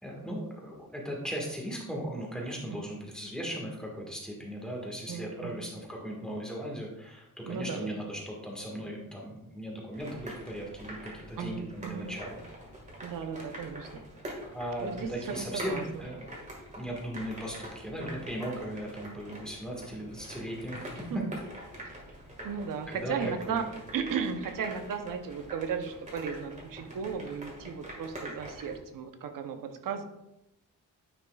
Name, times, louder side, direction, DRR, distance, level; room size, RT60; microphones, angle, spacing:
voice 1, 0.0-12.4 14.5-16.2 16.8-20.8 22.9-23.7, equal, ahead, -2 dB, 1.6 m, -38 dB
voice 2, 5.1-5.6 7.5-8.0 11.4-12.1 13.0-14.0 14.8-16.0 21.1-21.3 22.4-23.6 23.9-30.0, right 6 dB, 75° right, 7 dB, 0.8 m, -35 dB
sound 1, 9.9-28.8, right 1 dB, 20° right, 1.7 m, -45 dB
9.6 x 5.9 x 2.3 m, 0.87 s
wide cardioid pair, 145°, 33 cm